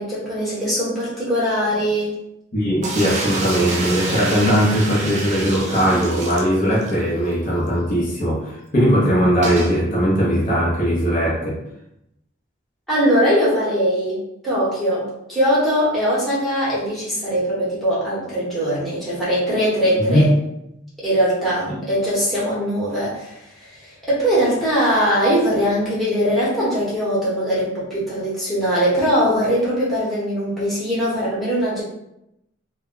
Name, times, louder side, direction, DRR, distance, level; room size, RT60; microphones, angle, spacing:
voice 1, 0.0-2.1 12.9-14.2 14.4-20.3 21.0-31.8, equal, ahead, -10 dB, 0.9 m, -21 dB
voice 2, 2.5-11.6 20.0-20.2, equal, 40° left, -6 dB, 0.6 m, -19 dB
sound 1, 2.8-7.0 7.3-7.4 7.7-7.8 9.4-9.8, right 2 dB, 35° right, 0.4 m, -27 dB
2.2 x 2.1 x 3.7 m, 0.83 s
head